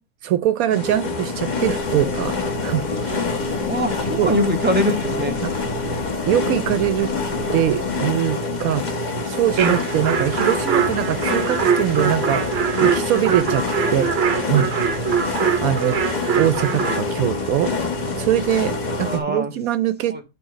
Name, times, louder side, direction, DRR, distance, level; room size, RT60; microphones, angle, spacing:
voice 1, 0.2-3.2 4.2-4.3 5.4-5.6 6.2-7.1 7.5-12.4 12.8-13.6 13.9-14.1 14.5-14.7 15.6-16.0 16.4-17.7 18.2-20.1, right 11 dB, 80° right, 1.0 m, -22 dB
sound 1, 0.7-19.2, left 3 dB, 35° left, 1.1 m, -26 dB
sound 2, 1.4-8.0, left 6 dB, 75° left, 1.2 m, -34 dB
voice 2, 3.7-5.3 19.0-19.5 20.1-20.2, equal, 5° right, 1.4 m, -22 dB
sound 3, 9.6-17.0, right 7 dB, 55° right, 0.9 m, -23 dB
8.9 x 3.1 x 5.0 m
omnidirectional pair, 1.5 m